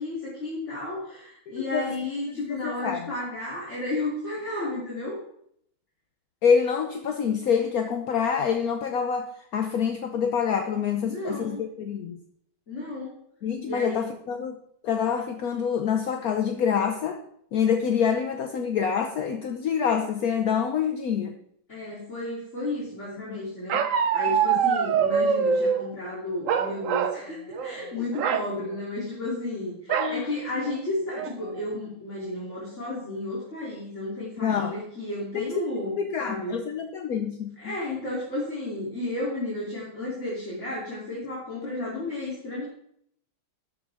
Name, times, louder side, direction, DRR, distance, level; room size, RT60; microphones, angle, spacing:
voice 1, 0.0-5.2 11.0-11.6 12.7-13.2 13.6-14.0 21.7-36.5 37.6-42.6, left 2 dB, 30° left, -6 dB, 3.4 m, -33 dB
voice 2, 1.5-1.9 2.3-3.1 6.4-12.2 13.4-14.6 14.8-17.2 17.5-21.4 23.3-23.4 24.5-24.6 30.0-30.3 34.4-34.7 35.3-35.5 36.0-37.7, left 7 dB, 60° left, 5 dB, 1.0 m, -26 dB
Bark, 23.7-25.8 26.5-27.2 27.5-27.8 28.1-28.5 29.9-30.2 30.7-30.8 31.1-31.6, right 7 dB, 85° right, 0.7 m, -24 dB
12.5 x 11.0 x 3.5 m, 0.69 s
omnidirectional pair, 2.4 m